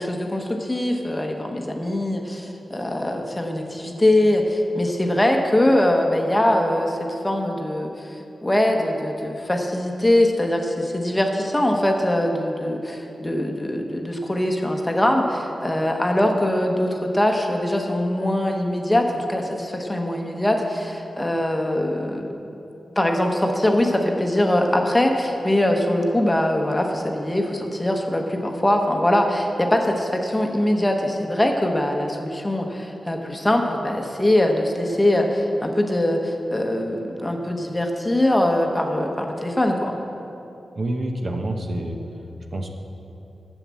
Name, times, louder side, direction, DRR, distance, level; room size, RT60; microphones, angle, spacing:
voice 1, 0.0-22.3 23.0-40.0, left 1 dB, 15° left, 2 dB, 1.0 m, -22 dB
voice 2, 40.8-42.0 42.5-42.7, right 1 dB, 45° right, 3 dB, 0.9 m, -27 dB
10.5 x 7.3 x 7.5 m, 2.9 s
wide cardioid pair, 115°, 0 cm